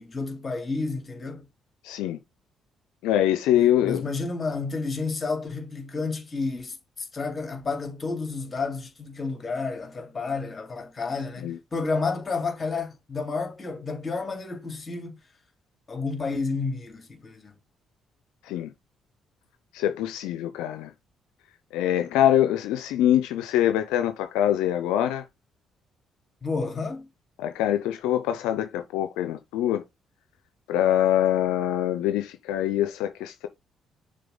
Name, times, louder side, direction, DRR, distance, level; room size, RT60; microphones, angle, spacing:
voice 1, 0.0-1.5 3.5-15.2 15.9-17.5 26.4-27.1, left 4 dB, 35° left, 2.7 m, -31 dB
voice 2, 1.8-2.2 3.0-4.0 11.4-11.6 18.5-18.7 19.7-20.9 21.7-25.2 27.4-29.8 30.7-33.5, left 11 dB, 90° left, 0.5 m, -24 dB
6.7 x 3.8 x 3.9 m
supercardioid pair, 65°, 0 cm